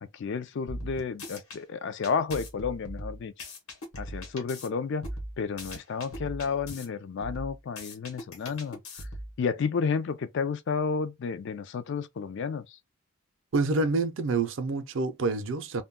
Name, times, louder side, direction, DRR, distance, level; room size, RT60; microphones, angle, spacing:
voice 1, 0.0-3.3 4.0-5.1 5.4-8.8 9.4-12.8, left 5 dB, 55° left, 0.3 m, -31 dB
sound 1, 0.7-1.6 2.0-4.7 5.0-6.9 7.2-9.4, equal, 75° left, 1.0 m, -40 dB
voice 2, 13.5-15.8, right 3 dB, 60° right, 0.4 m, -27 dB
2.2 x 2.2 x 3.5 m
head